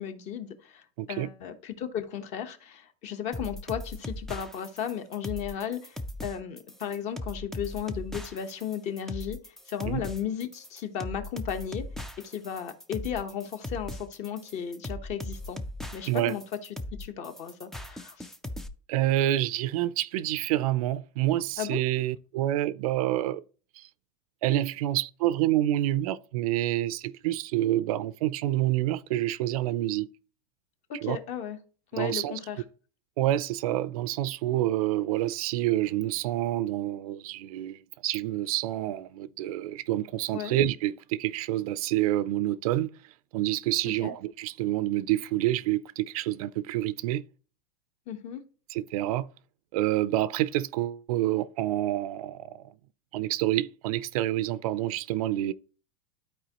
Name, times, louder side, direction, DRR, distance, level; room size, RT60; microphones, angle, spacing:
voice 1, 0.0-0.8 1.1-9.4 9.7-11.8 12.2-15.6 15.9-16.4 17.0-18.3 21.6-21.8 30.9-31.6 31.9-32.6 40.3-40.5 44.0-44.1 48.1-48.4, left 8 dB, 40° left, 1.0 m, -35 dB
voice 2, 1.0-1.3 9.8-10.0 16.1-16.3 18.9-23.4 23.8-23.9 24.4-30.1 31.0-31.2 32.0-32.4 33.2-42.9 43.3-47.2 48.7-49.3 49.7-52.7 53.1-55.5, right 14 dB, 75° right, 0.5 m, -28 dB
sound 1, 3.3-18.7, left 1 dB, ahead, 0.3 m, -38 dB
12.5 x 4.5 x 3.0 m
supercardioid pair, 160°, 19 cm